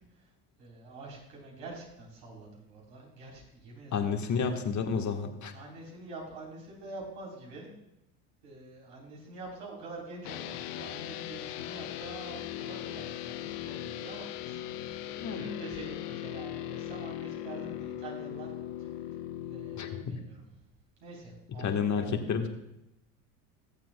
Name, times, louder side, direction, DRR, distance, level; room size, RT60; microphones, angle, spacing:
voice 1, 0.6-4.6 5.5-7.7 8.4-18.5 18.8-18.9 19.5-20.4 21.0-22.4, right 2 dB, 75° right, -2 dB, 3.7 m, -46 dB
voice 2, 3.9-5.5 15.2-15.4 19.8-20.2 21.6-22.5, left 6 dB, 40° left, 4 dB, 1.4 m, -30 dB
sound 1, 10.2-20.0, left 12 dB, 80° left, 0.8 m, -39 dB
20.0 x 7.4 x 2.2 m, 0.86 s
hypercardioid pair, 75°, 46 cm